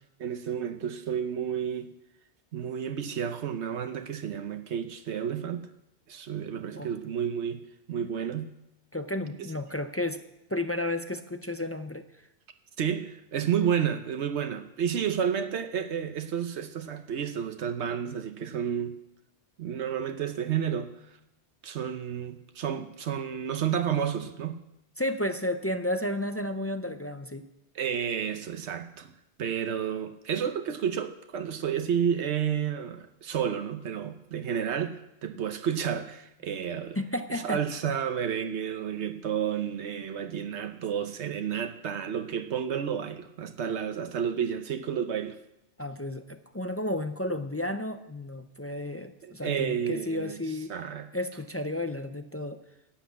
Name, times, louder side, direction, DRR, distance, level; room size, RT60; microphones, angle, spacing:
voice 1, 0.2-1.9 2.5-5.6 6.1-8.5 12.8-19.0 19.6-20.9 21.6-24.6 27.7-29.1 29.4-37.0 37.3-45.4 49.2-50.3 50.7-51.1, right 8 dB, 85° right, 8 dB, 1.1 m, -31 dB
voice 2, 8.9-10.2 10.5-12.1 25.0-27.4 37.0-37.6 37.9-38.0 45.8-50.9 51.1-52.6, left 1 dB, 20° left, 8 dB, 0.3 m, -32 dB
11.5 x 8.1 x 8.2 m, 0.86 s
omnidirectional pair, 1.1 m